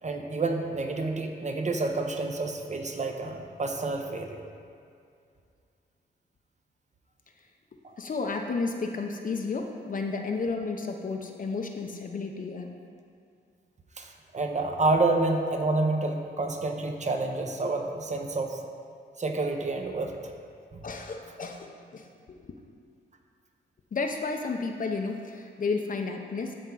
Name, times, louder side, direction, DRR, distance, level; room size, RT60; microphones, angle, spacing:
voice 1, 0.0-4.5 7.8-8.0 14.0-18.6 19.2-20.3 20.7-20.8, right 2 dB, 40° right, 4 dB, 0.9 m, -29 dB
voice 2, 8.0-12.7 20.8-22.4 23.9-26.5, left 4 dB, 45° left, 3 dB, 0.7 m, -32 dB
13.0 x 4.5 x 3.9 m, 2.4 s
cardioid pair, 65°, 19 cm